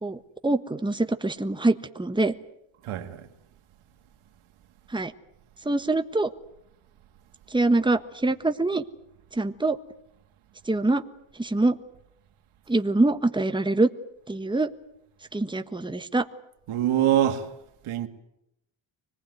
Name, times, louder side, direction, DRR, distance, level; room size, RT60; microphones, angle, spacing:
voice 1, 0.0-2.3 4.9-5.1 5.6-6.3 7.5-8.8 9.4-9.8 10.7-11.0 11.4-11.8 12.7-13.9 14.3-14.7 15.3-16.2, right 2 dB, 10° right, 1.4 m, -24 dB
voice 2, 2.8-3.3 16.7-17.5 17.8-18.1, right 11 dB, 90° right, 2.1 m, -24 dB
25.0 x 19.0 x 9.4 m
cardioid pair, 75°, 48 cm